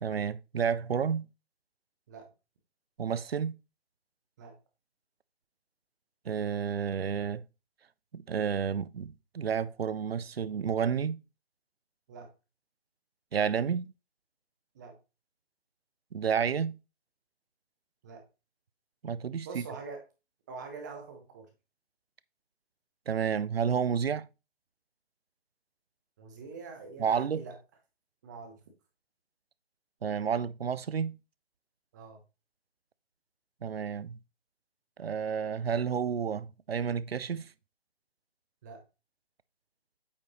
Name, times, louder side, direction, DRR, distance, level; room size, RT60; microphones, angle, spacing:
voice 1, 0.0-1.3 3.0-3.5 6.3-7.4 8.1-11.2 13.3-13.9 16.1-16.8 19.0-19.6 23.1-24.3 27.0-27.4 30.0-31.2 33.6-34.2 35.0-37.5, right 7 dB, 70° right, 0.5 m, -30 dB
voice 2, 19.4-20.0 20.5-21.5 26.2-27.6 28.2-28.6 31.9-32.2 38.6-38.8, right 4 dB, 15° right, 1.0 m, -44 dB
8.5 x 4.9 x 3.0 m
figure-of-eight pair, 145°, 31 cm